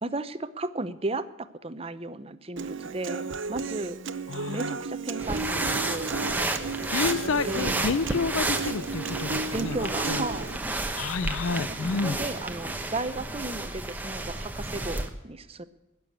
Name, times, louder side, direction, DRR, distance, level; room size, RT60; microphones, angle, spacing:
voice 1, 0.0-4.0 4.5-6.2 7.4-7.7 9.5-10.6 11.7-15.6, right 2 dB, 30° right, 13 dB, 0.7 m, -34 dB
Human voice / Acoustic guitar, 2.6-10.6, right 4 dB, 70° right, 0.8 m, -34 dB
voice 2, 4.3-4.7 6.9-9.8 10.1-10.2 10.9-12.2, left 4 dB, 85° left, 19 dB, 0.6 m, -29 dB
sound 1, 5.2-15.1, right 2 dB, 10° right, 1.1 m, -31 dB
20.5 x 7.0 x 8.1 m, 1.1 s
head